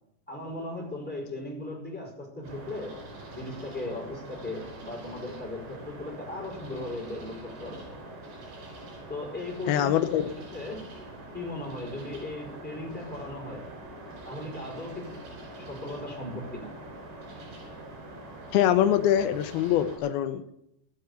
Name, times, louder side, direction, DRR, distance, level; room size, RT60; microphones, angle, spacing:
voice 1, 0.3-3.0 3.3-7.9 9.1-9.9 10.2-10.9 11.3-13.7 14.2-15.2 15.5-16.7, left 2 dB, ahead, -3 dB, 4.1 m, -37 dB
sound 1, 2.4-20.0, right 1 dB, 85° right, 6.0 m, -44 dB
voice 2, 9.7-10.3 18.5-20.4, left 11 dB, 75° left, 10 dB, 2.4 m, -23 dB
16.5 x 7.8 x 8.1 m, 0.80 s
omnidirectional pair, 5.0 m